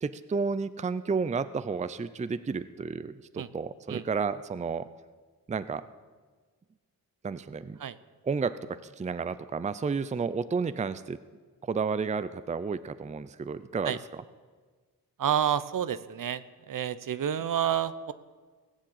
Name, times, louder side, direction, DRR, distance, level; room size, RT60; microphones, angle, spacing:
voice 1, 0.0-4.9 5.5-5.9 7.2-7.8 8.2-11.2 11.6-14.0, right 5 dB, 20° right, 14 dB, 0.5 m, -31 dB
voice 2, 15.2-16.4 16.7-18.1, right 9 dB, 60° right, 15 dB, 0.7 m, -29 dB
18.5 x 7.3 x 8.0 m, 1.4 s
cardioid pair, 80°, 37 cm